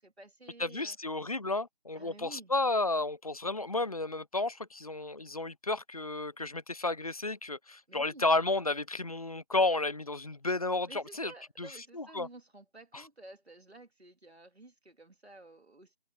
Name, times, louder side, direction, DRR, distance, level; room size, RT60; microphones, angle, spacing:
voice 1, 0.0-1.1 1.9-2.5 7.9-8.3 10.9-16.0, right 2 dB, 80° right, 2.2 m, -52 dB
voice 2, 0.6-11.3 11.6-11.7 11.9-12.3, left 2 dB, 35° left, 0.7 m, -32 dB
figure-of-eight pair, 160°, 32 cm